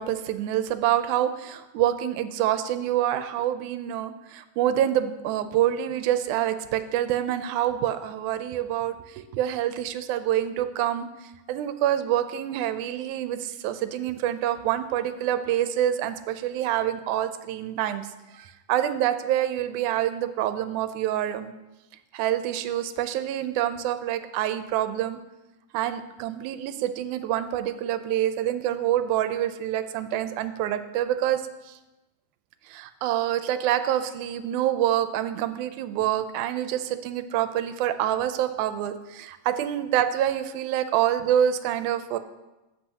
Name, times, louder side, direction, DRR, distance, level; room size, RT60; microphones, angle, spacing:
voice 1, 0.0-11.1 11.5-18.1 18.3-21.5 22.1-25.2 25.7-31.8 32.7-42.2, right 11 dB, 80° right, 11 dB, 2.0 m, -26 dB
13.5 x 8.2 x 2.8 m, 1.0 s
omnidirectional pair, 3.5 m